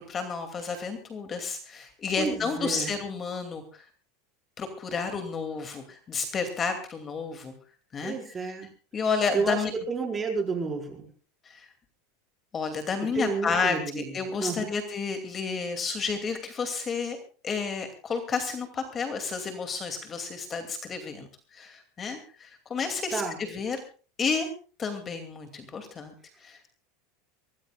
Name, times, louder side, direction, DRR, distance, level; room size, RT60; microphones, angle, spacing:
voice 1, 0.0-3.9 4.6-7.5 7.9-8.5 8.9-9.7 11.4-11.7 12.5-17.2 17.4-23.8 24.2-24.5 24.8-26.1 26.4-26.7, left 5 dB, 20° left, 7 dB, 2.5 m, -31 dB
voice 2, 2.2-2.9 8.0-8.7 9.3-9.6 9.9-11.1 13.1-14.1 14.3-14.7 23.1-23.4, right 4 dB, 15° right, 4 dB, 4.8 m, -30 dB
24.0 x 19.0 x 2.4 m, 0.38 s
supercardioid pair, 155°, 0 cm